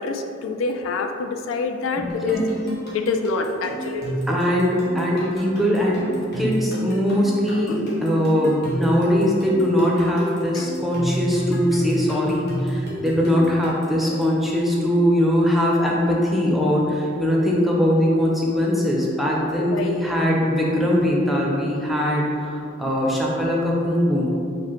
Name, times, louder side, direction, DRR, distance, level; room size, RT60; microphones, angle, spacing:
voice 1, 0.0-2.4 2.9-4.4 7.7-7.8 10.5-10.6 19.6-20.0, left 4 dB, 75° left, 5 dB, 0.3 m, -26 dB
voice 2, 2.0-2.4 4.3-6.0 6.3-24.3, equal, ahead, -4 dB, 0.5 m, -21 dB
sound 1, 2.1-14.4, right 1 dB, 50° left, 1.2 m, -31 dB
5.0 x 2.1 x 4.3 m, 2.7 s
head